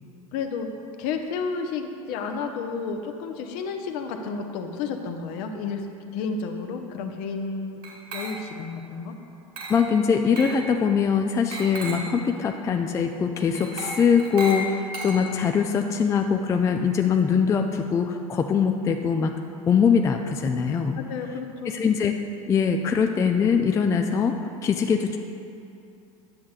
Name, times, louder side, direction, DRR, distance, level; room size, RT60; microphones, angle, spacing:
voice 1, 0.3-0.7 1.0-7.8 8.1-9.1 20.9-21.8, left 5 dB, 50° left, 5 dB, 0.7 m, -31 dB
Glass, 7.8-8.7 9.6-9.9 10.4-10.7 11.5-12.2 13.5-15.6, right 1 dB, 45° right, 1.5 m, -35 dB
voice 2, 9.7-19.3 19.7-21.0 21.7-22.1 22.5-24.3 24.6-25.2, left 6 dB, 15° left, 4 dB, 0.3 m, -22 dB
10.0 x 7.2 x 2.4 m, 2.6 s
figure-of-eight pair, 80°, 18 cm